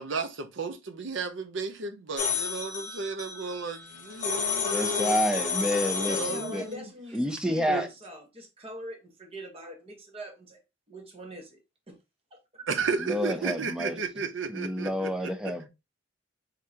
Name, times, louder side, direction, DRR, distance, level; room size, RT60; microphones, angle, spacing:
voice 1, 0.0-5.3 6.2-6.9 7.7-7.9 12.7-15.3, right 4 dB, 75° right, 0.7 m, -33 dB
sound 1, 2.2-6.6, left 6 dB, 40° left, 1.1 m, -31 dB
voice 2, 4.7-6.6 7.1-7.9 13.0-15.7, equal, 5° right, 0.5 m, -29 dB
voice 3, 5.9-10.6 10.9-11.6 11.9-12.0 12.3-12.6, right 1 dB, 30° right, 1.1 m, -43 dB
3.7 x 3.7 x 2.8 m
head